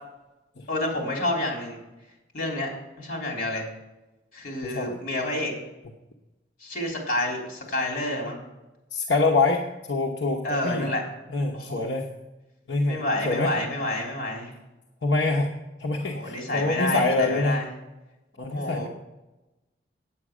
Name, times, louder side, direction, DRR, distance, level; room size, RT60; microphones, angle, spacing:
voice 1, 0.7-1.8 2.3-2.7 3.0-3.7 4.3-5.5 6.6-8.4 10.4-11.0 11.5-11.9 12.9-14.5 16.1-17.6 18.5-18.9, left 1 dB, 50° left, 0 dB, 3.4 m, -29 dB
voice 2, 4.6-5.0 8.9-9.6 9.9-11.0 11.3-12.1 12.7-13.5 15.0-15.5 15.8-17.6 18.4-18.9, left 3 dB, 75° left, 0 dB, 1.0 m, -25 dB
8.7 x 8.5 x 6.1 m, 1.0 s
head